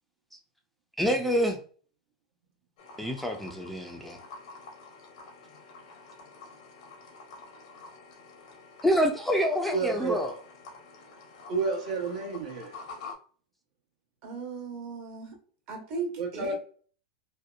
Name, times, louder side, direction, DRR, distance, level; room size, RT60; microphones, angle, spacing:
voice 1, 1.0-1.6 3.0-4.2 8.8-10.3, equal, 5° left, 0.3 m, -27 dB
sound 1, 2.8-13.1, left 3 dB, 75° left, 0.7 m, -48 dB
voice 2, 9.7-10.2 11.5-12.7 16.2-16.5, right 4 dB, 80° right, 0.9 m, -30 dB
voice 3, 14.2-15.3 15.7-16.5, right 4 dB, 50° right, 1.0 m, -37 dB
2.7 x 2.1 x 2.3 m
supercardioid pair, 125°, 4 cm